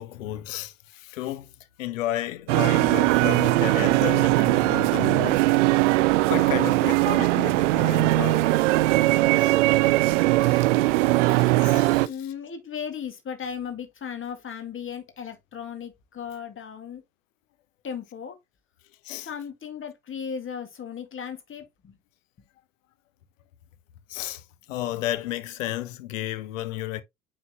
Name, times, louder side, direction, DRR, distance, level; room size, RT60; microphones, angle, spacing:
voice 1, 0.0-1.5 1.8-5.6 6.0-8.4 9.4-9.5 10.4-10.7 11.3-12.1 19.0-19.3 24.1-24.4 24.7-27.0, left 13 dB, 65° left, 1.1 m, -33 dB
sound 1, 2.5-12.1, right 19 dB, 60° right, 0.5 m, -20 dB
voice 2, 12.0-17.0 17.8-18.4 19.2-22.0, left 7 dB, 30° left, 1.9 m, -36 dB
9.3 x 4.2 x 3.0 m
figure-of-eight pair, 70°, 41 cm